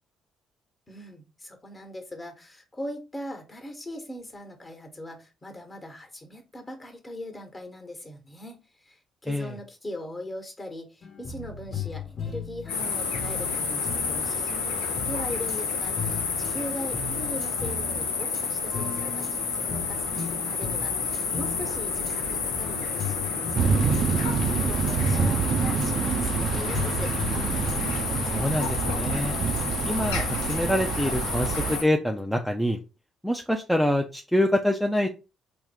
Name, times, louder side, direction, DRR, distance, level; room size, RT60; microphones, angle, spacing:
voice 1, 0.9-24.1 24.6-27.1, left 1 dB, 25° left, 5 dB, 1.2 m, -40 dB
sound 1, 11.0-15.6 15.9-30.6, left 4 dB, 50° left, 1.1 m, -38 dB
sound 2, 12.7-31.8, left 5 dB, 85° left, 0.5 m, -30 dB
sound 3, 23.5-31.8, right 6 dB, 55° right, 0.4 m, -27 dB
voice 2, 28.3-29.4 29.9-32.8 33.2-35.1, left 1 dB, ahead, 3 dB, 0.5 m, -26 dB
3.6 x 2.2 x 3.4 m, 0.29 s
hypercardioid pair, 50°, 0 cm